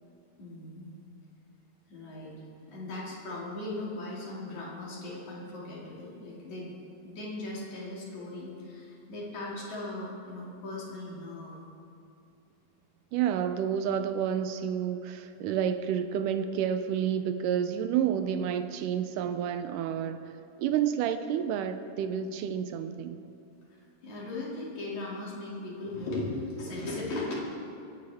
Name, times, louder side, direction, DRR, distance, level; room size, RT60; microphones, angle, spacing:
voice 1, 0.4-0.9 1.9-2.3 2.7-6.7 7.0-11.6 22.2-22.3 22.6-22.7 23.7-27.3, left 2 dB, 55° left, -5 dB, 3.5 m, -38 dB
voice 2, 13.1-20.3 20.6-23.2, right 9 dB, 80° right, 10 dB, 1.9 m, -29 dB
25.0 x 10.0 x 3.4 m, 2.5 s
omnidirectional pair, 4.2 m